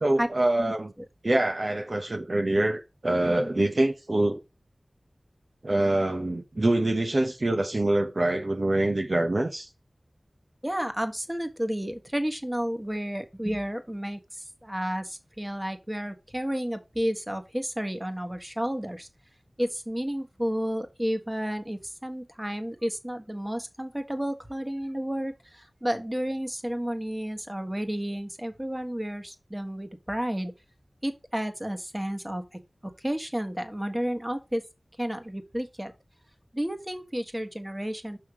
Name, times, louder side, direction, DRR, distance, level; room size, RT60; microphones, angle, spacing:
voice 1, 0.0-0.9 1.2-4.4 5.6-9.7, right 1 dB, 55° right, 0.9 m, -25 dB
voice 2, 10.6-14.2 14.6-19.1 19.6-30.5 31.0-32.6 33.0-34.6 35.0-35.9 36.5-38.2, equal, 15° right, 1.4 m, -31 dB
6.5 x 5.7 x 4.8 m
wide cardioid pair, 50°, 0 cm